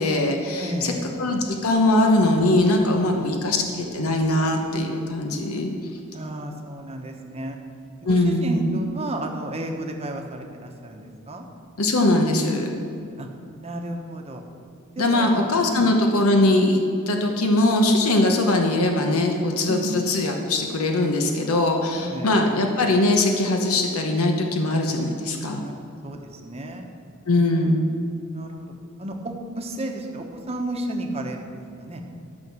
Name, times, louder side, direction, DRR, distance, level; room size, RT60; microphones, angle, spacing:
voice 1, 0.0-0.9 1.2-5.7 8.0-8.6 11.8-12.7 15.0-25.6 27.3-27.9, left 2 dB, 85° left, 3 dB, 1.0 m, -21 dB
voice 2, 0.6-1.1 3.1-3.3 6.1-7.6 8.0-11.4 13.2-13.3 13.6-14.4 15.0-15.9 19.7-20.0 22.1-22.4 25.6-25.7 26.0-26.9 27.4-27.7 28.3-28.7 29.0-32.0, right 1 dB, 30° right, 3 dB, 1.0 m, -32 dB
12.5 x 6.3 x 6.2 m, 2.4 s
head